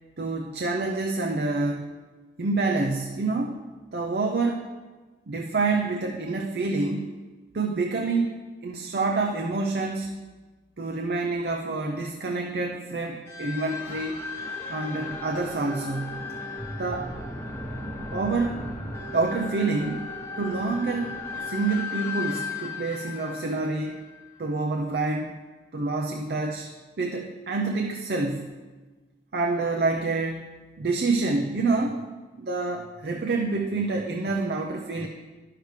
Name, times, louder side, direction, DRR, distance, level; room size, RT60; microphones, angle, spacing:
voice 1, 0.2-1.9 2.4-3.6 3.9-4.7 5.3-7.1 7.5-10.2 10.8-14.2 14.7-16.3 16.8-17.2 18.1-18.7 19.1-20.1 20.4-21.2 21.5-24.0 24.4-25.4 25.7-26.7 27.0-28.5 29.3-32.0 32.4-35.1, right 3 dB, 60° right, 1 dB, 0.6 m, -27 dB
sound 1, 13.3-24.5, left 3 dB, 15° left, 1.0 m, -36 dB
11.0 x 6.7 x 3.2 m, 1.3 s
head